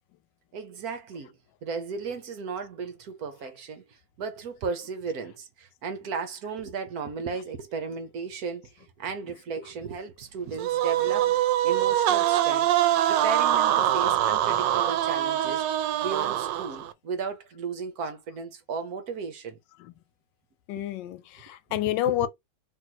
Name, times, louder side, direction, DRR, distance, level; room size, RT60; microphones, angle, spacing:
voice 1, 0.5-19.6 21.7-22.3, right 5 dB, 60° right, 1.2 m, -35 dB
sound 1, 10.6-16.9, right 12 dB, 80° right, 1.2 m, -24 dB
voice 2, 11.0-11.4 14.5-14.6 19.8-19.9 20.7-22.3, left 14 dB, 80° left, 1.3 m, -30 dB
3.1 x 3.0 x 3.9 m
omnidirectional pair, 1.9 m